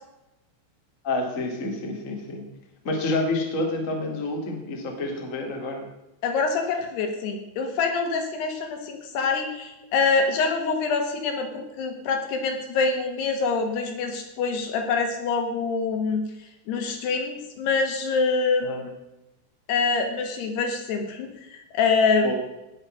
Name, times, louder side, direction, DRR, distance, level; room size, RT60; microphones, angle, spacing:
voice 1, 1.0-2.4 2.8-5.8 18.6-18.8 22.2-22.3, left 2 dB, 40° left, 1 dB, 1.1 m, -28 dB
voice 2, 6.2-16.2 16.7-18.9 19.7-22.3, left 4 dB, 65° left, 4 dB, 3.1 m, -25 dB
18.5 x 6.6 x 6.3 m, 0.94 s
omnidirectional pair, 5.7 m